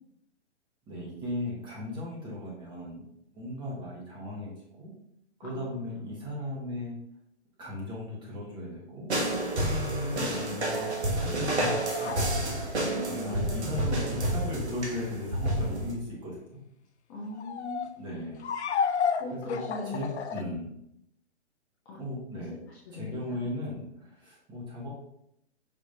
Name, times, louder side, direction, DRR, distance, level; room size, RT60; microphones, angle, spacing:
voice 1, 0.9-3.0 3.3-4.5 4.8-4.9 5.4-6.9 7.6-16.4 18.0-18.5 19.3-19.6 19.9-20.7 22.0-22.6 22.9-24.9, left 1 dB, 15° right, -4 dB, 1.1 m, -37 dB
voice 2, 5.4-6.1 12.8-13.9 17.1-18.2 19.2-20.0 20.3-20.5 21.9-22.0 22.7-23.4, left 2 dB, 20° left, -6 dB, 0.5 m, -40 dB
sound 1, 9.1-15.9, right 1 dB, 70° right, 1.1 m, -30 dB
sound 2, 10.7-13.1 15.4-15.6 17.3-17.9 18.4-20.4, left 6 dB, 70° left, 0.5 m, -32 dB
5.2 x 2.8 x 2.7 m, 0.75 s
figure-of-eight pair, 125°, 34 cm